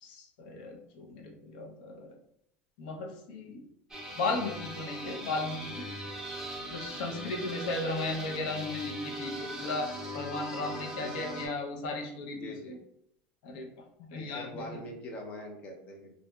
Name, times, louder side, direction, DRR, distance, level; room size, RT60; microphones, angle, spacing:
voice 1, 0.0-2.2 2.8-3.6 4.2-5.9 6.7-12.8 13.4-13.7 14.1-14.8, left 2 dB, 75° left, 2 dB, 0.6 m, -36 dB
sound 1, 3.9-11.5, equal, 10° right, 0.6 m, -39 dB
voice 2, 10.7-11.5 12.3-12.8 14.1-16.1, left 1 dB, 30° left, 2 dB, 0.6 m, -43 dB
2.9 x 2.6 x 2.2 m, 0.75 s
cardioid pair, 155°, 5 cm